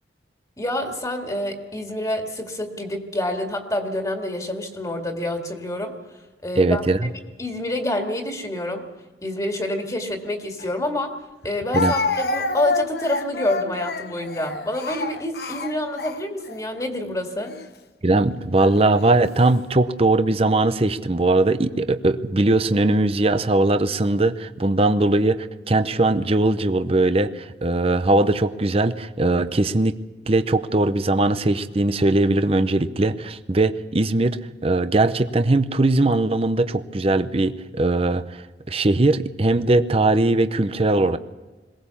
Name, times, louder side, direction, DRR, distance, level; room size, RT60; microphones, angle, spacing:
voice 1, 0.6-6.0 6.4-6.8 7.4-8.9 9.2-11.1 11.4-17.5, left 1 dB, 20° left, 3 dB, 2.1 m, -27 dB
voice 2, 6.6-7.1 11.7-11.9 18.0-30.0 30.3-38.4 38.7-41.2, right 2 dB, 35° right, 11 dB, 0.7 m, -20 dB
Speech, 10.6-10.7 11.7-16.6 17.4-17.7 18.6-19.2, left 3 dB, 60° left, 1.0 m, -28 dB
22.0 x 18.0 x 7.1 m, 1.2 s
head